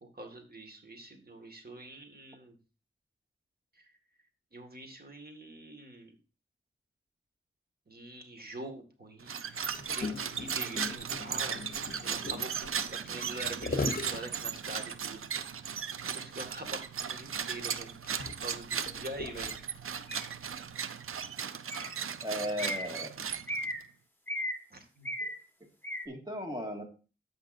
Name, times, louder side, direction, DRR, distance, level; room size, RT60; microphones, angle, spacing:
voice 1, 0.0-2.6 3.8-3.9 4.5-6.2 7.9-9.7 9.9-11.6 12.0-15.6 16.0-17.9 18.4-19.5 24.7-25.1, right 1 dB, 50° right, 4 dB, 2.0 m, -45 dB
sound 1, 9.2-23.8, right 7 dB, 90° right, 0.5 m, -37 dB
Gurgling, 9.6-15.1 15.7-15.8 16.1-16.3 16.6-16.7 17.4-19.9 20.6-20.7, left 3 dB, 45° left, 0.9 m, -39 dB
sound 2, 20.1-20.3 21.7-22.0 22.6-22.9 23.5-23.8 24.3-24.6 25.0-25.4 25.8-26.1, equal, 10° left, 1.5 m, -36 dB
voice 2, 22.2-23.1 26.1-26.8, equal, 20° right, 2 dB, 2.1 m, -36 dB
14.0 x 5.2 x 2.6 m, 0.34 s
wide cardioid pair, 80°, 21 cm